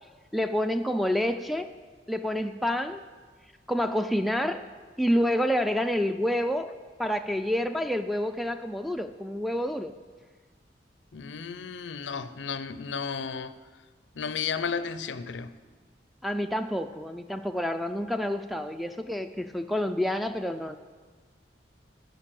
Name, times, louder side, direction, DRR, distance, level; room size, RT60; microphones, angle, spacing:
voice 1, 0.3-1.7 2.1-3.0 3.7-4.7 5.0-6.7 7.0-9.9 16.2-20.8, equal, ahead, 0.3 m, -28 dB
voice 2, 11.1-13.6 14.2-15.6, left 6 dB, 85° left, 0.5 m, -33 dB
14.0 x 5.2 x 7.6 m
head